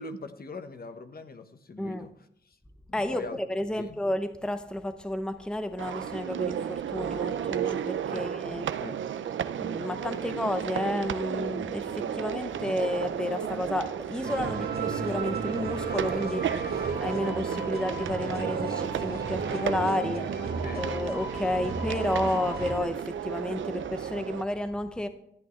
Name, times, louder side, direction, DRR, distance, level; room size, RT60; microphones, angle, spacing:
voice 1, 0.0-2.1 2.4-2.6 2.9-3.4 3.7-4.0 8.1-8.3 8.8-9.0 20.6-20.8, left 3 dB, 50° left, 1.1 m, -41 dB
voice 2, 2.9-8.8 9.6-20.4 20.7-25.1, left 1 dB, 5° left, 0.7 m, -31 dB
sound 1, 5.8-24.4, right 8 dB, 80° right, 0.5 m, -33 dB
sound 2, 14.2-22.8, right 3 dB, 55° right, 1.4 m, -35 dB
13.0 x 8.6 x 3.2 m
cardioid pair, 70°, 20 cm